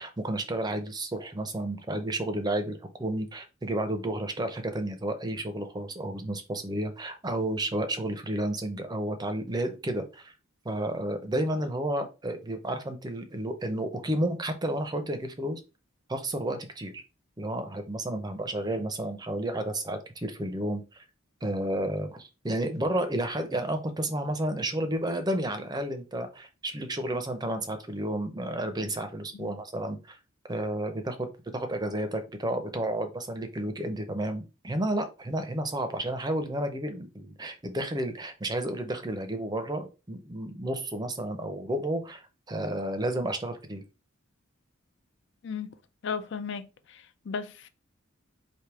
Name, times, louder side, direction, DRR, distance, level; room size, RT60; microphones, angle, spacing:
voice 1, 0.0-10.3 10.6-15.6 16.1-17.0 17.4-21.0 21.4-30.2 30.5-31.3 31.5-43.8, right 1 dB, 20° right, 0.6 m, -31 dB
voice 2, 45.4-45.7 46.0-46.7 46.9-47.7, left 6 dB, 60° left, 0.4 m, -35 dB
3.4 x 2.7 x 4.5 m
head